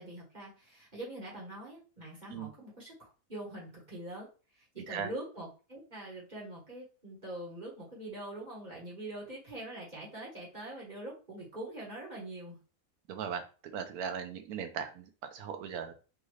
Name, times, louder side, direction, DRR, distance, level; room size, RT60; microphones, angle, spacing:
voice 1, 0.0-4.3 4.6-12.6, right 1 dB, 30° right, -5 dB, 1.3 m, -44 dB
voice 2, 13.1-15.9, right 7 dB, 75° right, 7 dB, 1.1 m, -38 dB
4.0 x 2.5 x 3.1 m, 0.35 s
omnidirectional pair, 1.6 m